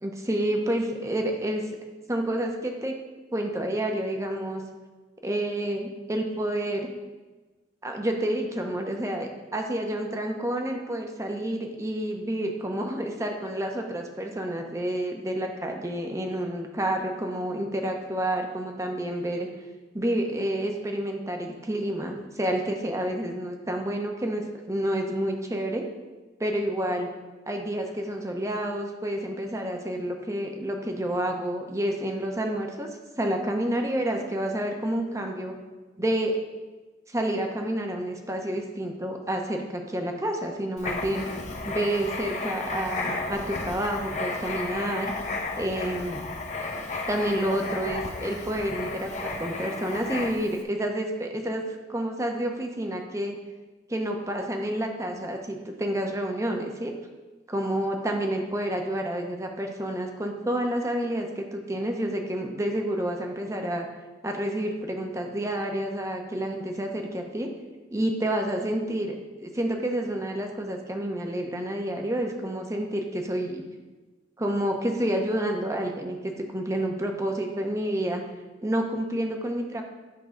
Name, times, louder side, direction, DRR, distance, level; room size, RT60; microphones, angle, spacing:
voice 1, 0.0-1.7 2.1-2.9 3.3-4.6 5.2-6.9 7.8-19.5 19.9-25.8 26.4-27.1 27.5-32.9 33.2-35.6 36.0-36.4 37.1-41.3 41.6-45.1 45.6-46.2 47.1-51.6 51.9-53.4 53.9-56.9 57.5-63.9 64.2-67.5 67.9-73.6 74.4-78.2 78.6-79.8, right 1 dB, 15° right, 3 dB, 0.8 m, -29 dB
Writing, 40.8-50.6, left 3 dB, 40° left, 0.9 m, -33 dB
10.5 x 3.7 x 5.1 m, 1.2 s
head